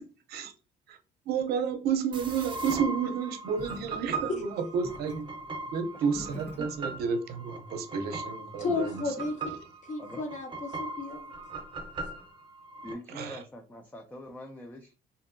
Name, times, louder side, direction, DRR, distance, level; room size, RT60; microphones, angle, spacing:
voice 1, 1.3-5.2 5.7-9.0 13.1-13.4, right 6 dB, 70° right, 6 dB, 0.6 m, -31 dB
sound 1, 2.1-12.9, right 3 dB, 30° right, 0.7 m, -39 dB
sound 2, 3.6-7.1, equal, 75° left, 1.6 m, -49 dB
voice 2, 5.9-6.3 6.6-6.7 10.0-10.3 12.8-14.9, left 1 dB, 10° left, 4 dB, 0.3 m, -44 dB
voice 3, 8.6-11.2, left 3 dB, 45° left, 4 dB, 0.9 m, -33 dB
2.7 x 2.6 x 2.5 m, 0.34 s
cardioid pair, 110°, 17 cm